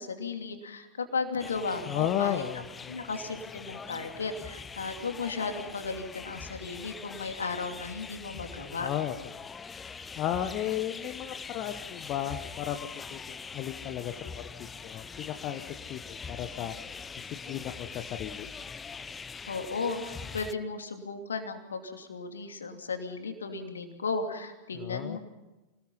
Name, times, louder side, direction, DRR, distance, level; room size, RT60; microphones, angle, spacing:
voice 1, 0.0-2.4 2.9-8.9 19.5-25.2, left 4 dB, 70° left, 6 dB, 2.7 m, -35 dB
sound 1, 1.4-20.5, left 5 dB, 15° left, 0.6 m, -43 dB
voice 2, 1.9-3.0 8.8-9.1 10.2-14.4 14.8-15.6 15.9-16.7 17.1-18.5 24.7-25.2, left 11 dB, 35° left, 8 dB, 1.1 m, -34 dB
26.5 x 19.5 x 5.7 m, 1.1 s
figure-of-eight pair, 90°, 0 cm